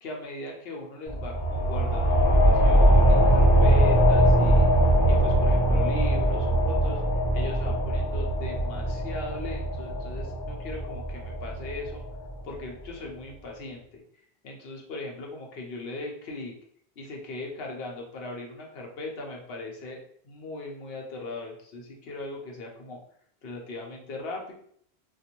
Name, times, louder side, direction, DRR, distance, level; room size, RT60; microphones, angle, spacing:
voice 1, 0.0-4.7 5.1-12.0 12.4-14.0 14.4-16.5 17.0-23.0 23.4-24.5, left 2 dB, 75° left, 0 dB, 0.9 m, -39 dB
sound 1, 1.1-12.3, right 1 dB, 30° left, 1.2 m, -21 dB
2.5 x 2.5 x 2.8 m, 0.63 s
omnidirectional pair, 1.0 m